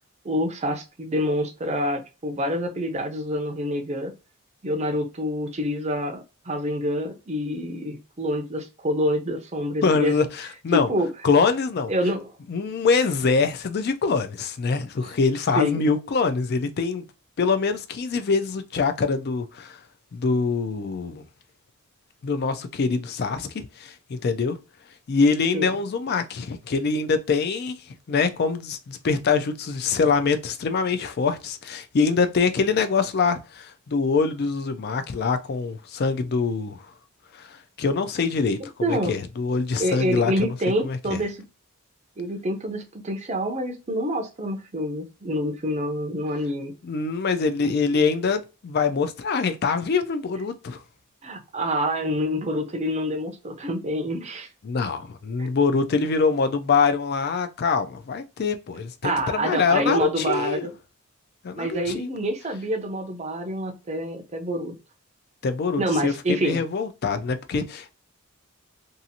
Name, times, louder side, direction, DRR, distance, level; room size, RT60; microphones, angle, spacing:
voice 1, 0.2-4.1 4.6-10.1 10.7-11.1 11.9-12.3 15.1-15.2 15.5-15.9 25.5-25.7 38.8-39.1 39.8-41.4 42.2-46.7 47.6-47.7 51.2-54.5 55.4-55.5 59.0-60.7 61.6-64.7 65.8-66.6, equal, 30° right, 0.5 m, -27 dB
voice 2, 9.8-10.9 11.2-11.9 12.5-17.0 17.4-19.8 20.1-21.2 22.2-24.6 25.1-27.8 28.1-36.8 37.3-40.5 40.8-41.2 46.8-50.8 54.6-60.7 61.4-62.1 65.4-67.9, left 4 dB, 45° left, 0.3 m, -24 dB
2.7 x 2.5 x 2.6 m
head